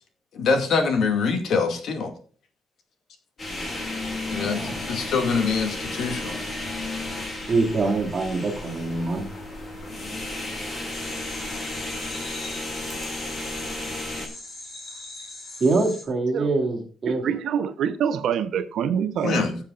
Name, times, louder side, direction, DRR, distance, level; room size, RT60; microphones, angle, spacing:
voice 1, 0.3-2.1 4.3-6.5 19.2-19.6, left 4 dB, 65° left, 2.2 m, -24 dB
sound 1, 3.4-14.3, left 2 dB, 25° left, 2.5 m, -33 dB
voice 2, 4.4-4.8 7.5-9.3 15.6-17.2, right 3 dB, 30° right, 2.9 m, -24 dB
sound 2, 10.9-16.0, left 2 dB, 45° left, 3.0 m, -40 dB
voice 3, 17.1-19.4, right 8 dB, 75° right, 0.9 m, -25 dB
18.5 x 7.2 x 2.5 m
wide cardioid pair, 165°, 0 cm